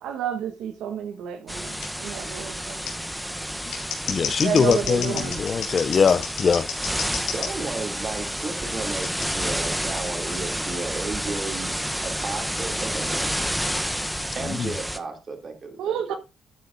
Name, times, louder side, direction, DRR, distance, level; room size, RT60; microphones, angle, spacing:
voice 1, 0.0-2.8 4.4-5.4 15.8-16.2, right 8 dB, 85° right, 1.2 m, -30 dB
sound 1, 1.5-15.0, equal, ahead, 0.8 m, -30 dB
Scissors, 1.8-1.9 2.8-2.9 3.6-7.5 9.0-9.3, left 7 dB, 90° left, 2.9 m, -32 dB
voice 2, 4.1-6.7 7.0-7.1 14.6-14.7, left 6 dB, 45° left, 0.5 m, -22 dB
voice 3, 7.3-13.4 14.3-16.2, right 4 dB, 40° right, 2.7 m, -34 dB
12.5 x 8.5 x 2.6 m
cardioid pair, 90°, 0 cm